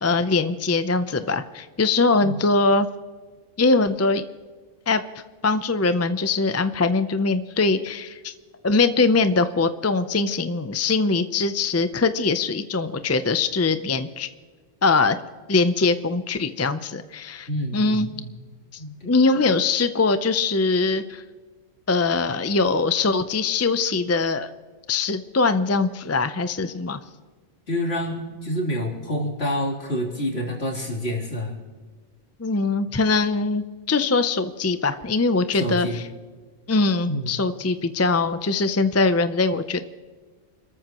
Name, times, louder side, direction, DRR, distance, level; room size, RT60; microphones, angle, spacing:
voice 1, 0.0-2.9 3.6-4.2 4.9-5.0 5.4-8.3 8.6-14.3 14.8-15.2 15.5-18.1 19.0-21.2 21.9-24.5 24.9-27.0 32.4-36.0 36.7-39.8, left 3 dB, 20° left, 11 dB, 0.4 m, -22 dB
voice 2, 17.5-18.2 18.8-19.4 27.7-31.5 35.5-36.0 37.1-37.3, equal, 55° left, -2 dB, 3.7 m, -28 dB
29.0 x 14.0 x 3.0 m, 1.5 s
omnidirectional pair, 1.3 m